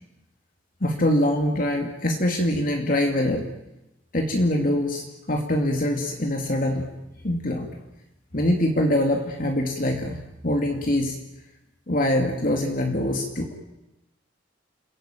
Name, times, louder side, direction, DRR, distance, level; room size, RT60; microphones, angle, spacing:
voice 1, 0.8-3.5 4.1-6.9 7.2-7.7 8.3-11.2 11.9-13.5, left 1 dB, 45° left, 2 dB, 2.6 m, -24 dB
29.0 x 17.0 x 9.2 m, 0.93 s
head